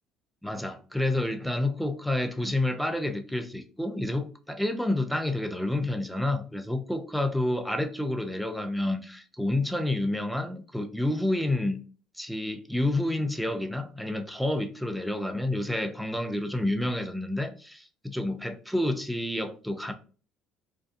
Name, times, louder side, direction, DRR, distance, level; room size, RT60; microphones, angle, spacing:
voice 1, 0.4-11.8 12.2-19.9, left 1 dB, ahead, 0.4 m, -29 dB
2.5 x 2.2 x 2.4 m
cardioid pair, 110°, 0 cm